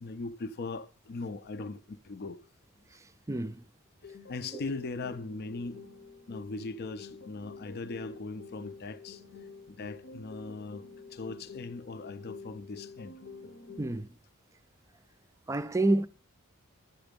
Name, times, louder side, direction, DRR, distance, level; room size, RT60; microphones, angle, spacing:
voice 1, 0.0-2.4 4.0-5.8 6.3-10.8 11.1-13.2, left 3 dB, 50° left, 0.5 m, -40 dB
sound 1, 4.0-14.0, left 4 dB, 65° left, 0.9 m, -48 dB
voice 2, 13.8-14.1 15.5-16.1, right 2 dB, 15° right, 0.4 m, -27 dB
11.0 x 8.0 x 5.1 m
head